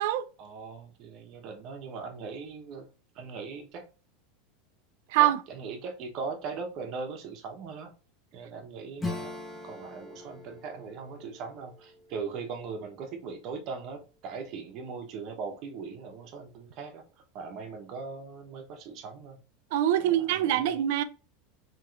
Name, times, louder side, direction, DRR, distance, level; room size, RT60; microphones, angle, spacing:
voice 1, 0.4-2.9 3.1-3.8 5.5-7.9 8.3-17.0 17.3-19.4 20.0-20.7, right 5 dB, 50° right, 0.9 m, -40 dB
Acoustic guitar / Strum, 9.0-13.3, left 2 dB, 15° left, 0.8 m, -41 dB
voice 2, 19.7-21.0, right 12 dB, 70° right, 0.3 m, -24 dB
3.0 x 2.9 x 2.4 m
supercardioid pair, 120°, 0 cm